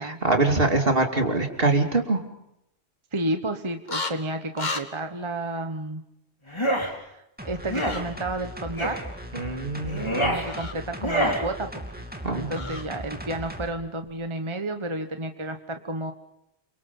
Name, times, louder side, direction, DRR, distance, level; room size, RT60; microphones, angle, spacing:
voice 1, 0.0-2.2 9.3-10.3 12.2-12.7, right 2 dB, 60° right, 4 dB, 3.1 m, -24 dB
voice 2, 3.1-6.0 6.8-9.0 10.2-11.8 12.4-16.1, right 1 dB, 30° right, 6 dB, 1.2 m, -31 dB
sound 1, 3.9-4.1 4.6-4.8 7.7-8.0 10.4-10.8 12.6-12.8, left 3 dB, 45° left, 1.8 m, -32 dB
sound 2, 6.5-6.9 7.7-8.0 8.8-9.0 9.8-10.4 11.0-11.4, equal, 25° left, 4.3 m, -26 dB
sound 3, 7.4-13.7 14.1-14.2, equal, 10° right, 2.7 m, -38 dB
28.5 x 25.5 x 5.5 m, 0.81 s
omnidirectional pair, 1.1 m